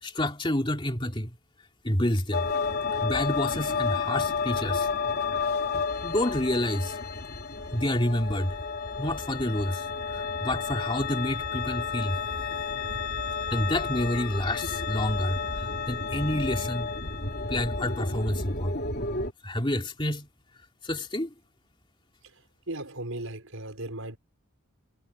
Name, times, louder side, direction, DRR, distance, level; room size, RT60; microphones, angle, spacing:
voice 1, 0.0-1.3 1.8-2.4 3.0-4.9 5.7-7.0 7.7-8.5 9.0-12.2 12.5-12.6 13.5-16.9 17.5-18.7 19.4-20.3 20.8-21.3, left 1 dB, 25° left, 3.0 m, -29 dB
sound 1, 2.3-19.3, left 4 dB, 50° left, 3.7 m, -31 dB
voice 2, 22.7-24.2, right 1 dB, 75° right, 5.2 m, -36 dB
head